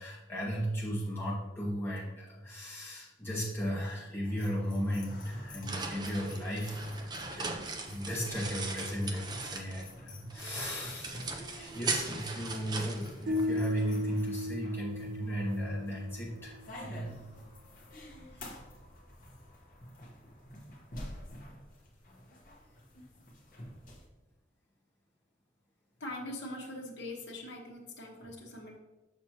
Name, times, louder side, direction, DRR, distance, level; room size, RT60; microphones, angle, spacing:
voice 1, 0.0-11.3 11.5-17.1, equal, 10° left, -6 dB, 1.8 m, -36 dB
sound 1, 4.2-24.1, left 1 dB, 45° left, 1.2 m, -49 dB
sound 2, 5.2-10.0 10.3-13.8, right 3 dB, 20° right, 0.5 m, -39 dB
sound 3, 13.3-16.4, left 1 dB, 70° right, 0.5 m, -35 dB
voice 2, 26.0-28.8, left 1 dB, 70° left, -2 dB, 1.2 m, -42 dB
6.4 x 6.0 x 2.9 m, 1.1 s
head